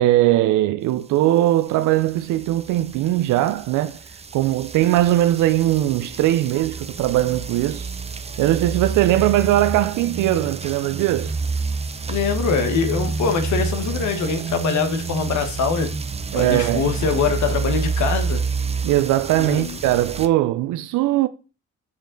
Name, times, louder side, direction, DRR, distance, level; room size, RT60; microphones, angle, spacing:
voice 1, 0.0-4.0 4.3-7.9 8.4-11.4 16.3-16.9 18.8-21.3, right 14 dB, 85° right, 0.5 m, -20 dB
sound 1, 1.7-20.3, right 4 dB, 20° right, 0.7 m, -29 dB
voice 2, 12.1-15.9 16.3-18.4 19.4-19.8, left 5 dB, 70° left, 1.2 m, -23 dB
6.8 x 5.2 x 3.8 m
cardioid pair, 90°, 30 cm